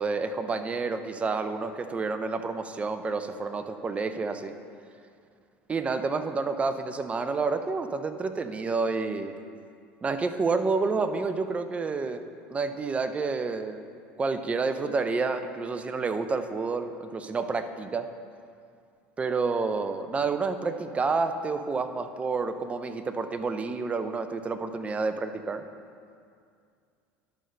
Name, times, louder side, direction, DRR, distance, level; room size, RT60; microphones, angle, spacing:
voice 1, 0.0-4.5 5.7-9.3 10.0-12.2 12.5-13.8 14.2-18.1 19.2-25.6, right 4 dB, 20° right, 9 dB, 0.5 m, -29 dB
11.0 x 3.9 x 5.3 m, 2.3 s
supercardioid pair, 100°, 6 cm